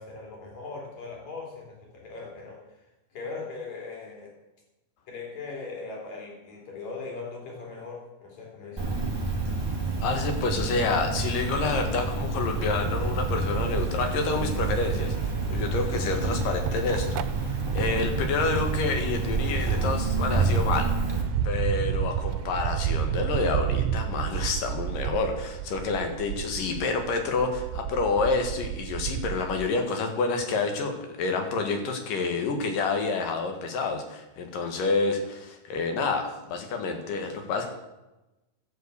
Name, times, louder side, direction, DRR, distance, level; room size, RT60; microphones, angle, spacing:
voice 1, 0.0-2.8 3.1-4.3 5.1-9.1, left 4 dB, 50° left, -1 dB, 4.6 m, -39 dB
Cricket, 8.8-21.2, right 3 dB, 10° right, 1.5 m, -28 dB
voice 2, 10.0-21.0 21.4-37.7, left 4 dB, 70° left, 5 dB, 3.2 m, -28 dB
sound 1, 13.4-29.7, right 10 dB, 90° right, 2.4 m, -32 dB
12.5 x 7.7 x 8.2 m, 1.0 s
omnidirectional pair, 4.1 m